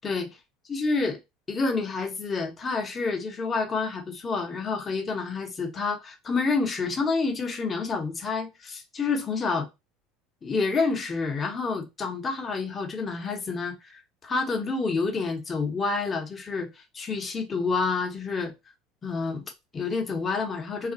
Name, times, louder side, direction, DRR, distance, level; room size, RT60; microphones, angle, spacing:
voice 1, 0.7-1.2 1.5-9.7 10.4-18.5 19.0-20.9, left 4 dB, 25° left, 0.8 m, -28 dB
2.4 x 2.0 x 3.7 m
supercardioid pair, 115°, 0 cm